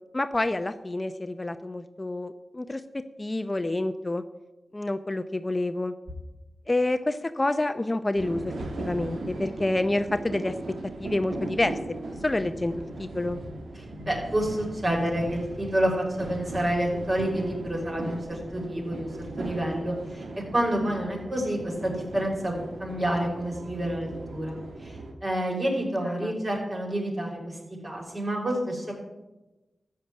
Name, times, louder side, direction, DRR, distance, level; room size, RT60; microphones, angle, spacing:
voice 1, 0.1-4.2 4.7-5.9 6.7-8.5 8.8-10.5 11.0-11.7 12.2-13.4 26.1-26.3, left 2 dB, 25° left, 10 dB, 0.6 m, -28 dB
London tube ride, 8.2-25.1, right 2 dB, 85° right, 1.7 m, -38 dB
voice 2, 13.8-19.1 19.4-27.6 27.8-28.9, right 1 dB, 40° right, -1 dB, 5.7 m, -29 dB
13.5 x 6.6 x 10.0 m, 1.0 s
cardioid pair, 65°, 0 cm